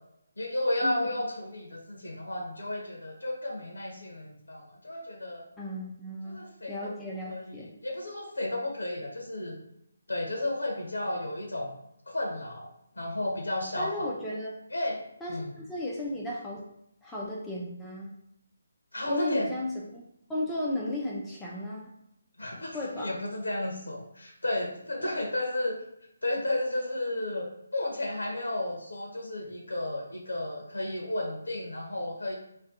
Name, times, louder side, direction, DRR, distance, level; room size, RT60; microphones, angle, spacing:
voice 1, 0.4-5.4 6.2-6.9 7.3-7.5 7.8-9.6 10.1-11.7 12.1-12.7 13.0-14.1 14.7-15.0 15.3-15.5 18.9-19.5 22.4-25.8 26.2-32.3, left 1 dB, 85° left, 0 dB, 0.7 m, -33 dB
voice 2, 5.6-6.4 6.7-7.7 13.8-14.6 15.2-16.6 17.0-18.1 19.0-20.0 20.3-21.9 22.7-23.2 25.0-25.1, left 1 dB, 5° left, -6 dB, 0.4 m, -34 dB
2.6 x 2.2 x 3.6 m, 0.76 s
figure-of-eight pair, 150°, 0 cm